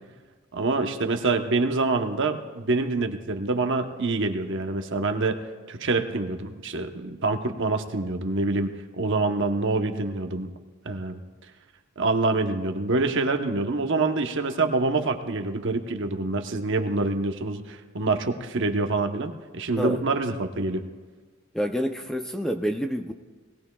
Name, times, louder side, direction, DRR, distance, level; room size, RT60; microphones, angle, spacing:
voice 1, 0.5-5.4 5.7-10.5 10.8-11.2 12.0-20.8, right 3 dB, 55° right, 6 dB, 0.9 m, -26 dB
voice 2, 21.5-23.1, equal, ahead, 5 dB, 0.4 m, -28 dB
20.5 x 18.0 x 2.3 m, 1.4 s
head